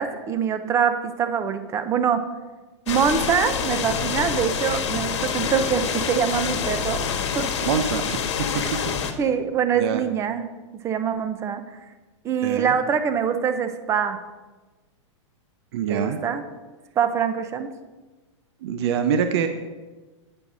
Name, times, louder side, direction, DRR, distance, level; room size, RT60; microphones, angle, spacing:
voice 1, 0.0-2.2 2.9-7.5 8.6-8.7 9.2-10.5 10.8-11.8 12.2-14.2 15.9-16.4 17.0-17.7, right 7 dB, 20° right, 10 dB, 0.6 m, -24 dB
sound 1, 2.9-9.1, left 7 dB, 65° left, 1.2 m, -27 dB
voice 2, 7.6-8.9 9.8-10.0 12.4-12.7 15.7-16.2 18.6-19.5, right 7 dB, 55° right, 8 dB, 0.7 m, -25 dB
8.7 x 5.3 x 6.1 m, 1.2 s
hypercardioid pair, 150°, 16 cm